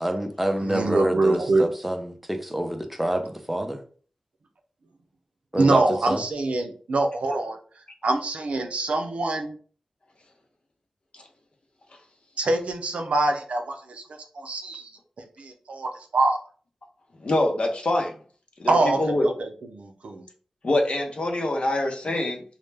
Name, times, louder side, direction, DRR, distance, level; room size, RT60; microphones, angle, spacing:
voice 1, 0.0-3.8 5.5-5.8 6.1-6.2, right 1 dB, 5° right, 5 dB, 0.5 m, -27 dB
voice 2, 0.6-1.7 5.6-7.6 8.0-9.5 12.4-14.0 14.3-14.9 15.4-16.4 18.7-20.2, right 2 dB, 80° right, 4 dB, 0.4 m, -24 dB
voice 3, 17.2-18.1 18.6-19.2 20.6-22.4, left 1 dB, 60° left, 2 dB, 0.6 m, -24 dB
2.1 x 2.0 x 3.2 m, 0.43 s
cardioid pair, 50°, 2 cm